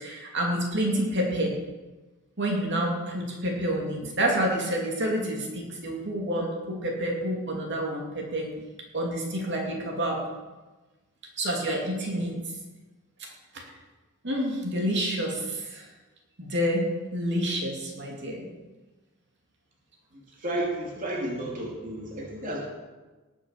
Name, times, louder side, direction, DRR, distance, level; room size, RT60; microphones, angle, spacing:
voice 1, 0.0-1.5 2.4-8.5 8.9-10.2 11.4-12.3 14.2-15.9 16.4-18.5, right 1 dB, 55° right, 0 dB, 2.8 m, -28 dB
voice 2, 20.4-22.6, right 1 dB, 40° right, -2 dB, 2.6 m, -32 dB
19.0 x 7.4 x 6.7 m, 1.2 s
head